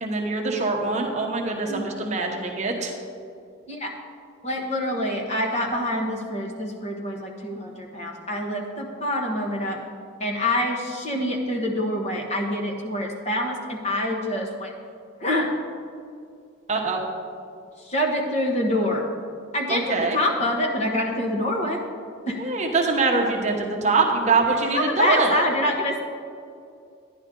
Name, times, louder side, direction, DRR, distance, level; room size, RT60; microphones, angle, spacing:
voice 1, 0.0-2.9 16.7-17.0 19.7-20.2 22.4-25.3, right 3 dB, 35° right, 1 dB, 1.0 m, -23 dB
voice 2, 4.4-9.8 10.2-14.7 15.2-15.5 17.8-19.1 19.5-21.8 22.3-22.5 24.7-26.0, left 1 dB, 35° left, 0 dB, 1.2 m, -26 dB
11.5 x 10.5 x 3.8 m, 2.4 s
head